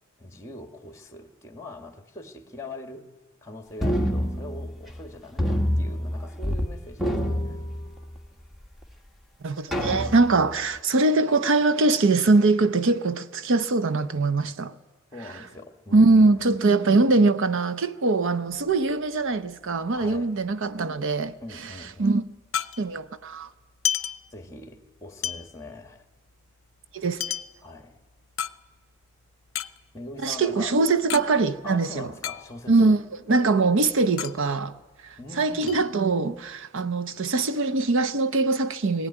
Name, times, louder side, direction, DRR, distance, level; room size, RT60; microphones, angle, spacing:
voice 1, 0.2-3.1 3.4-7.6 15.1-16.4 19.9-20.3 21.4-22.2 24.3-26.0 27.6-28.0 29.9-30.8 31.6-33.0 35.2-35.8, left 2 dB, 15° left, 1.7 m, -42 dB
sound 1, 3.8-5.0 5.4-6.7 6.9-8.3 8.8-8.9 9.7-10.5, equal, ahead, 1.3 m, -27 dB
voice 2, 9.4-14.7 15.9-21.3 22.0-22.2 22.8-23.5 26.9-27.3 30.2-32.1 32.7-33.0 33.3-34.7 35.0-39.1, right 3 dB, 65° right, 0.7 m, -22 dB
sound 2, 18.5-20.2 20.5-20.6 20.8-23.2 23.6-24.8 25.2-29.0 29.4-31.3 31.5-31.6 31.9-32.9 33.2-35.3 35.7-36.5, left 10 dB, 65° left, 0.6 m, -33 dB
20.0 x 16.0 x 10.0 m
head